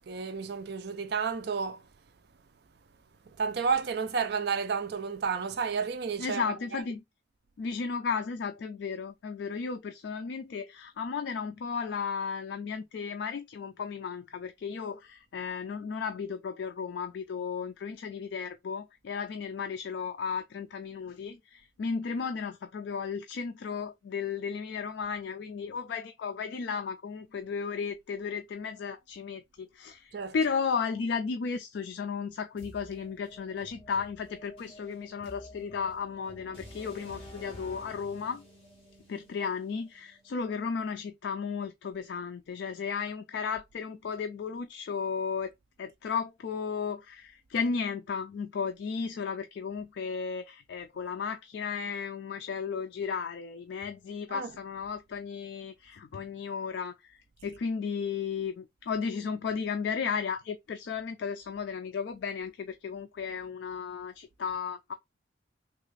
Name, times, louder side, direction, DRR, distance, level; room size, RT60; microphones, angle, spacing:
voice 1, 0.1-1.8 3.4-6.4 6.7-6.8 30.1-30.3 54.3-54.5, right 5 dB, 55° right, 0.4 m, -31 dB
voice 2, 6.2-7.0 7.6-38.4 39.1-45.5 45.8-64.9, left 5 dB, 60° left, 0.3 m, -34 dB
sound 1, 32.6-40.4, left 1 dB, 30° left, 1.3 m, -50 dB
3.4 x 2.4 x 3.1 m
head